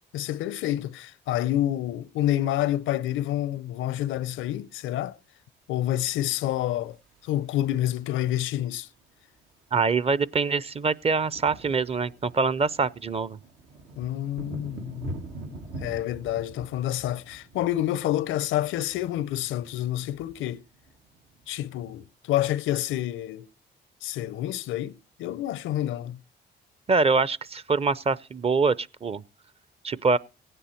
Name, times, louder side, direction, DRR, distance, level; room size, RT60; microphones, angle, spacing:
voice 1, 0.1-5.2 5.7-7.0 7.2-8.9 14.0-15.2 15.8-20.6 21.5-23.5 24.0-26.2, left 13 dB, 85° left, 0.6 m, -28 dB
sound 1, 6.1-7.7 9.0-9.1 9.3-9.5 9.8-21.9, right 2 dB, 80° right, 1.7 m, -44 dB
voice 2, 9.7-13.4 26.9-29.2 29.8-30.2, right 4 dB, 30° right, 0.6 m, -24 dB
16.5 x 9.9 x 4.3 m
cardioid pair, 90°, 20 cm